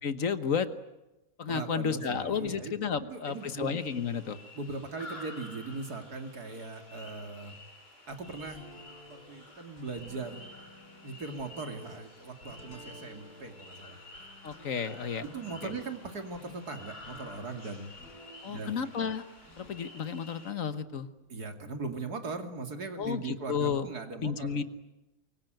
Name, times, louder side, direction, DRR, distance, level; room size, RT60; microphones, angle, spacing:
voice 1, 0.0-0.7 1.4-4.4 14.4-15.2 15.6-15.7 18.4-19.2 19.6-21.1 23.0-23.9 24.2-24.6, left 6 dB, 60° left, 11 dB, 1.5 m, -32 dB
voice 2, 1.5-2.7 3.0-3.7 4.5-7.5 8.1-8.6 9.1-10.5 11.0-14.0 14.9-15.1 15.3-17.9 18.4-18.9 21.3-24.6, right 3 dB, 85° right, 5 dB, 3.1 m, -39 dB
sound 1, 3.2-20.5, left 2 dB, 40° left, 4.6 m, -51 dB
sound 2, 8.3-18.9 19.4-21.7, left 1 dB, 85° left, 5.8 m, -54 dB
24.0 x 23.0 x 9.2 m, 0.99 s
omnidirectional pair, 1.6 m